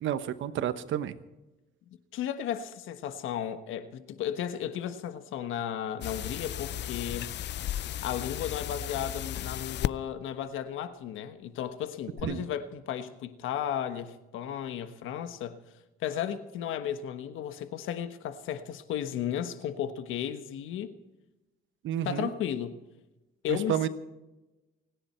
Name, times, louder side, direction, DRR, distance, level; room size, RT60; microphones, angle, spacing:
voice 1, 0.0-1.1 12.2-12.4 21.8-22.3 23.5-23.9, right 10 dB, 75° right, 1.1 m, -30 dB
voice 2, 2.1-7.3 8.0-15.6 16.0-21.0 22.0-22.8 23.4-23.9, left 9 dB, 85° left, 1.3 m, -34 dB
sound 1, 6.0-9.9 12.2-12.3, left 12 dB, 60° left, 0.5 m, -34 dB
29.5 x 10.5 x 4.5 m
cardioid pair, 90°, 20 cm